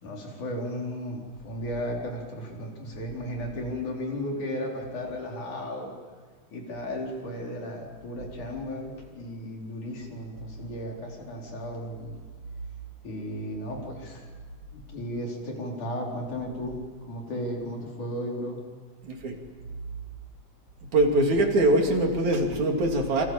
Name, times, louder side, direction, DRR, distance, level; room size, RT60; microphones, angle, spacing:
voice 1, 0.0-5.9 6.5-12.1 13.0-14.3 14.7-18.6, equal, 70° left, -1 dB, 5.9 m, -35 dB
voice 2, 19.0-19.4 20.9-23.2, right 1 dB, 65° right, 2 dB, 4.3 m, -23 dB
28.5 x 26.0 x 7.5 m, 1.5 s
omnidirectional pair, 3.6 m